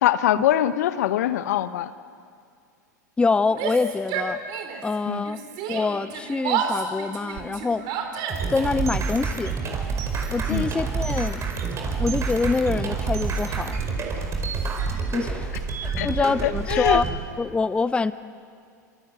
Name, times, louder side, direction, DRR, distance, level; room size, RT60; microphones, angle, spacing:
voice 1, 0.0-1.9 5.1-5.2 10.5-10.6 16.0-16.1 16.4-17.0, left 12 dB, 60° left, 13 dB, 1.2 m, -23 dB
voice 2, 3.2-4.4 4.8-5.4 5.7-7.8 8.5-9.5 10.3-11.4 12.0-13.8 15.1-15.5 15.8-17.1 17.4-18.1, left 4 dB, 10° left, 15 dB, 0.7 m, -25 dB
Yell, 3.5-4.9 5.2-8.7, right 7 dB, 45° right, 4.2 m, -30 dB
sound 1, 8.3-17.2, right 5 dB, 30° right, 5.0 m, -28 dB
27.0 x 26.5 x 8.1 m, 2.3 s
figure-of-eight pair, 90°, 10 cm